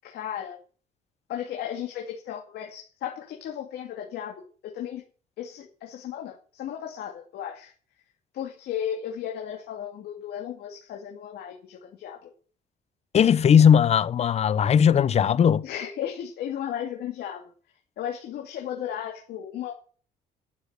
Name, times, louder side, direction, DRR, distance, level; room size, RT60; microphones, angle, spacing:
voice 1, 0.0-0.6 1.3-5.0 5.4-7.7 8.3-12.3 15.6-17.4 18.0-19.7, left 9 dB, 70° left, 2.5 m, -35 dB
voice 2, 13.1-15.6, left 8 dB, 40° left, 0.7 m, -18 dB
11.5 x 7.2 x 8.1 m
cardioid pair, 110°, 17 cm